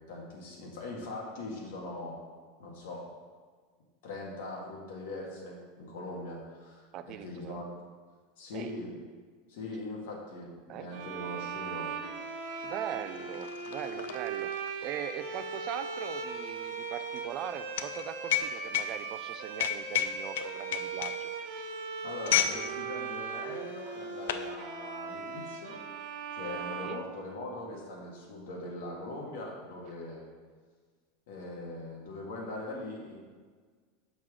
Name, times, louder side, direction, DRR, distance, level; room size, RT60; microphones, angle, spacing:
voice 1, 0.1-2.2 2.6-3.0 4.0-7.7 8.4-9.0 9.5-11.9 22.0-25.8 26.3-30.3 31.3-33.2, left 2 dB, 70° left, -1 dB, 1.8 m, -41 dB
voice 2, 6.9-7.6 8.5-8.7 10.7-10.9 12.6-21.7 26.8-27.0, right 10 dB, 35° right, 10 dB, 0.3 m, -40 dB
sound 1, 10.9-27.7, right 5 dB, 50° right, 0.8 m, -39 dB
sound 2, 12.3-12.4 12.7-22.6 22.9-23.2 23.8-24.5, left 10 dB, 90° left, 0.4 m, -33 dB
6.4 x 6.1 x 3.7 m, 1.5 s
supercardioid pair, 170°, 0 cm